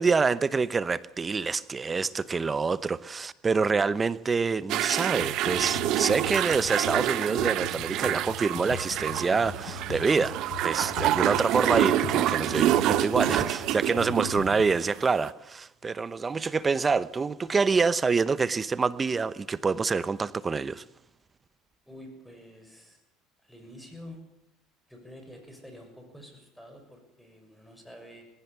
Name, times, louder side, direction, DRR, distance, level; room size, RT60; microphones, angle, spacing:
voice 1, 0.0-10.4 10.6-20.8, right 4 dB, 25° right, 0.8 m, -26 dB
sound 1, 4.7-15.3, right 13 dB, 60° right, 1.0 m, -27 dB
Computer keyboard, 5.2-14.7, left 7 dB, 75° left, 5.5 m, -40 dB
voice 2, 21.9-23.0 23.4-24.2 24.9-28.2, left 1 dB, ahead, 6.5 m, -48 dB
19.0 x 16.5 x 8.2 m
supercardioid pair, 100°, 0 cm